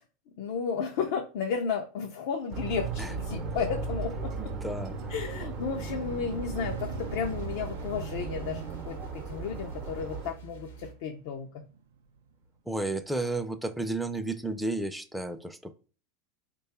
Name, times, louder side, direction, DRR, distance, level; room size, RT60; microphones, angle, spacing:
voice 1, 0.4-4.5 5.1-11.6, left 6 dB, 65° left, 3 dB, 0.4 m, -33 dB
sound 1, 2.5-10.3, right 4 dB, 45° right, 0.7 m, -36 dB
sound 2, 4.1-12.3 12.9-13.1, right 6 dB, 85° right, 0.4 m, -45 dB
voice 2, 4.4-5.1 12.7-15.7, right 2 dB, 5° right, 9 dB, 0.5 m, -32 dB
sound 3, 6.5-10.9, right 7 dB, 85° left, 0.8 m, -47 dB
3.1 x 2.3 x 4.2 m, 0.37 s
hypercardioid pair, 90°, 0 cm